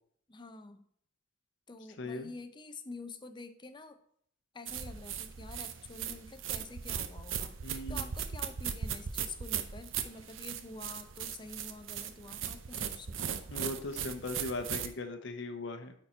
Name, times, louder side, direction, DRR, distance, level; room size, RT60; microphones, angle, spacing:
voice 1, 0.3-0.9 1.7-4.0 4.5-13.7, left 3 dB, 25° left, 8 dB, 0.6 m, -48 dB
voice 2, 2.0-2.3 7.6-8.1 13.5-15.9, left 2 dB, 70° left, 7 dB, 0.8 m, -39 dB
sound 1, 4.7-14.9, right 8 dB, 80° right, 0.6 m, -38 dB
9.2 x 4.4 x 4.3 m, 0.65 s
head